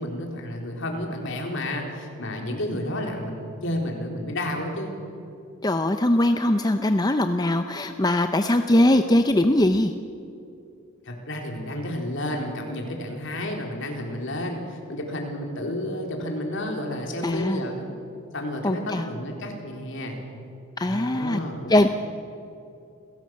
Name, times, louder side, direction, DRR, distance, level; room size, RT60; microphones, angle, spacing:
voice 1, 0.0-4.9 11.0-17.9 18.3-20.2 20.8-21.9, left 1 dB, 60° left, 1 dB, 4.1 m, -31 dB
voice 2, 5.6-9.9 17.2-17.6 18.6-19.1 20.8-21.4 21.7-21.9, left 1 dB, 20° left, 7 dB, 0.7 m, -21 dB
28.0 x 17.0 x 7.7 m, 2.6 s
head